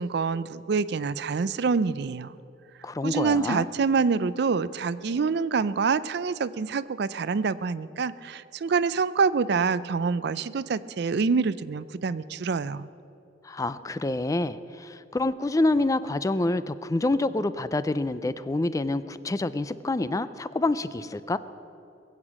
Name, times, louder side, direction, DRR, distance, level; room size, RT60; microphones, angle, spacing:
voice 1, 0.0-2.3 3.0-12.9, right 5 dB, 65° right, 17 dB, 0.4 m, -26 dB
voice 2, 2.8-3.7 13.4-21.4, left 2 dB, 20° left, 14 dB, 0.4 m, -27 dB
21.0 x 8.2 x 7.3 m, 2.7 s
head